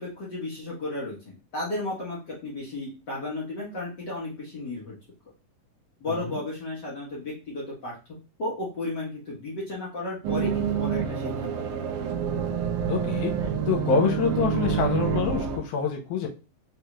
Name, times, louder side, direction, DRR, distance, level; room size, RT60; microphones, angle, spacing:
voice 1, 0.0-5.0 6.0-7.9 8.4-11.8, left 2 dB, 60° left, -6 dB, 1.1 m, -34 dB
sound 1, 10.2-15.6, right 7 dB, 80° right, 2.0 m, -27 dB
voice 2, 12.9-13.3 13.7-16.3, left 6 dB, 80° left, 1 dB, 2.1 m, -26 dB
5.2 x 2.3 x 3.0 m, 0.31 s
omnidirectional pair, 3.6 m